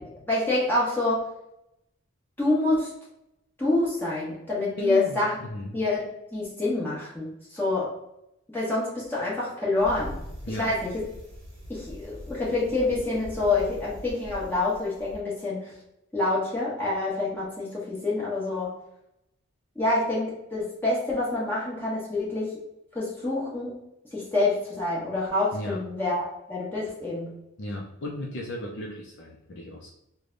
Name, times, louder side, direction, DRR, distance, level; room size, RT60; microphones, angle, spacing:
voice 1, 0.3-1.2 2.4-2.9 3.6-5.3 5.7-6.0 6.3-7.9 8.5-10.2 10.5-11.0 11.7-15.7 16.1-18.7 19.7-22.5 22.9-23.7 24.1-27.3, left 2 dB, 10° left, -8 dB, 1.2 m, -27 dB
voice 2, 4.8-5.8 10.4-10.7 25.5-25.8 27.6-29.9, left 1 dB, 55° left, -2 dB, 0.5 m, -36 dB
Bicycle, 9.8-15.2, equal, 30° right, 1.1 m, -42 dB
3.2 x 2.2 x 3.8 m, 0.85 s
head